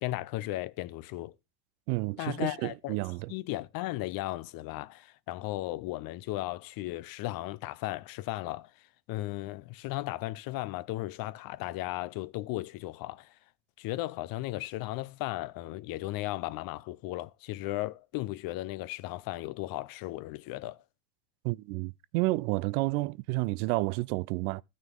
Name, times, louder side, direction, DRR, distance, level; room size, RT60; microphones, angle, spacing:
voice 1, 0.0-1.3 2.2-3.0 3.3-13.4 13.8-20.8, left 17 dB, 45° left, 0.7 m, -36 dB
voice 2, 1.9-3.3 21.4-24.6, right 21 dB, 60° right, 0.5 m, -30 dB
14.0 x 6.4 x 3.7 m
supercardioid pair, 105°, 50 cm